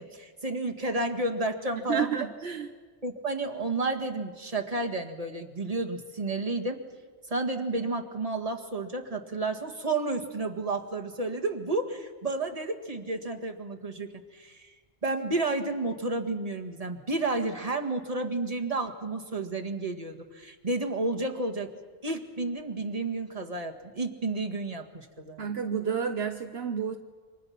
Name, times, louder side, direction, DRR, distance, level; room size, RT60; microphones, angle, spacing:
voice 1, 0.0-2.3 3.0-6.8 7.3-14.7 15.0-21.7 22.0-25.5, right 2 dB, 35° right, 4 dB, 1.9 m, -31 dB
voice 2, 1.9-2.7 25.4-27.0, right 7 dB, 65° right, 6 dB, 1.1 m, -30 dB
29.0 x 25.5 x 5.9 m, 1.5 s
omnidirectional pair, 1.1 m